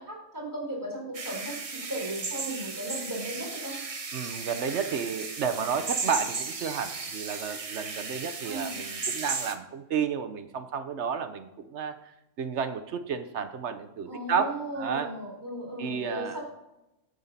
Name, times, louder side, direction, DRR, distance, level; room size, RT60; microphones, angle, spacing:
voice 1, 0.0-3.8 8.4-8.7 14.1-16.4, right 1 dB, 10° right, -3 dB, 4.1 m, -36 dB
sound 1, 1.1-9.5, right 4 dB, 30° right, 0.7 m, -35 dB
voice 2, 4.1-12.0 12.4-15.1 15.8-16.4, right 6 dB, 60° right, 10 dB, 0.9 m, -31 dB
8.9 x 8.0 x 4.1 m, 0.90 s
omnidirectional pair, 1.5 m